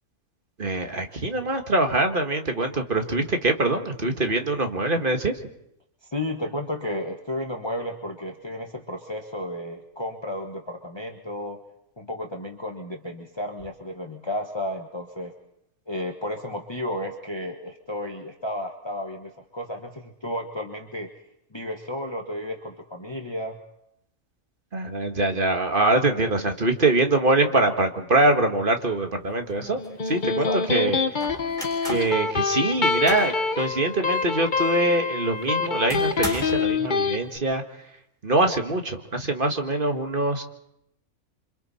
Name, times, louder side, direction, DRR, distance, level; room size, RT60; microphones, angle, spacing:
voice 1, 0.6-5.4 24.7-31.0 31.8-37.6 38.2-40.4, right 2 dB, 40° right, 5 dB, 1.8 m, -23 dB
voice 2, 6.0-11.6 12.0-15.3 15.9-21.1 21.5-23.6 30.4-30.9, left 1 dB, 20° left, 2 dB, 1.4 m, -33 dB
sound 1, 29.1-29.2 29.5-30.3 31.2-32.1 32.6-33.4 33.8-33.9 34.4-34.5 35.9-36.7, equal, ahead, 6.8 m, -36 dB
Electric guitar, 29.8-37.2, left 4 dB, 35° left, 1.2 m, -25 dB
28.0 x 25.5 x 4.3 m, 0.79 s
omnidirectional pair, 1.5 m